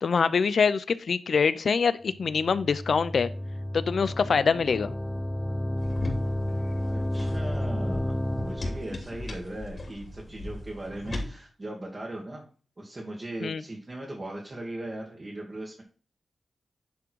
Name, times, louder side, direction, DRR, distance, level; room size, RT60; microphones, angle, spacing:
voice 1, 0.0-3.3 3.7-4.9 13.4-13.6, left 5 dB, 65° left, 15 dB, 0.5 m, -24 dB
sound 1, 2.1-9.0, left 1 dB, 5° left, 0.4 m, -31 dB
sound 2, 5.8-11.3, left 1 dB, 45° left, 3.1 m, -38 dB
voice 2, 6.9-12.4 12.8-15.8, right 1 dB, 30° right, -2 dB, 1.9 m, -38 dB
10.5 x 3.8 x 4.6 m, 0.40 s
wide cardioid pair, 100°, 0 cm